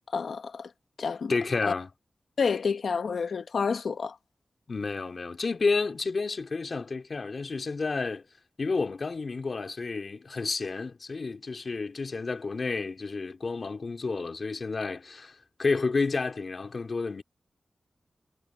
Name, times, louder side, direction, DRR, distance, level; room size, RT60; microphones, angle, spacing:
voice 1, 0.1-0.7 1.0-1.3 1.7-1.8 2.4-4.2, left 5 dB, 75° left, 1.1 m, -29 dB
voice 2, 1.3-1.9 4.7-8.2 8.6-17.2, left 4 dB, 50° left, 2.9 m, -30 dB
wide cardioid pair, 140°, 0 cm